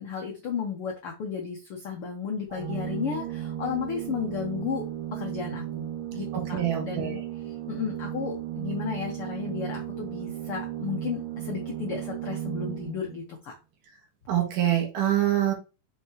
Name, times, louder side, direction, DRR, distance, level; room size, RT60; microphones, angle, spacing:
voice 1, 0.0-4.8 5.1-5.9 6.1-7.2 7.4-13.5, left 7 dB, 75° left, 1.3 m, -34 dB
Organ, 2.5-13.2, right 11 dB, 90° right, 3.0 m, -35 dB
voice 2, 6.3-7.2 14.3-15.5, right 11 dB, 70° right, 2.9 m, -25 dB
6.0 x 5.6 x 2.9 m
omnidirectional pair, 4.0 m